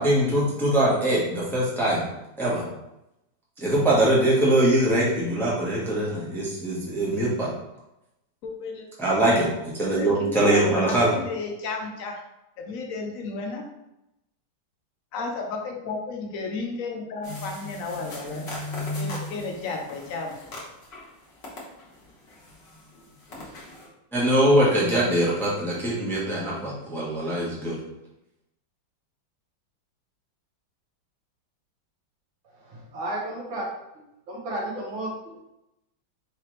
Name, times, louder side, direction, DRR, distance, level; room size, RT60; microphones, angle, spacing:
voice 1, 0.0-2.0 2.4-2.6 3.6-7.5 9.0-9.4 9.8-11.1 24.1-27.8, right 1 dB, ahead, -6 dB, 0.6 m, -22 dB
voice 2, 8.4-8.9 9.3-9.4 9.9-12.2 12.6-13.6 15.1-18.4 18.9-20.4, left 4 dB, 80° left, 2 dB, 0.7 m, -33 dB
sound 1, 17.2-21.1 21.4-23.9, left 2 dB, 40° left, 1.1 m, -37 dB
voice 3, 32.4-33.7 34.3-35.4, right 1 dB, 85° right, -3 dB, 1.9 m, -33 dB
4.8 x 3.0 x 3.1 m, 0.88 s
omnidirectional pair, 2.1 m